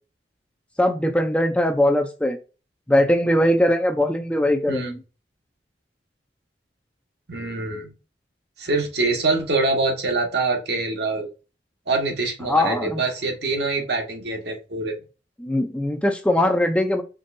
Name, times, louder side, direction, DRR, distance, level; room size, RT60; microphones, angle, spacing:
voice 1, 0.8-2.4 2.9-5.0 12.5-13.0 15.4-17.0, left 1 dB, 5° left, 4 dB, 0.5 m, -20 dB
voice 2, 7.3-7.9 8.6-11.3 11.9-15.0, right 3 dB, 70° right, 2 dB, 1.3 m, -24 dB
5.3 x 3.1 x 2.6 m, 0.31 s
head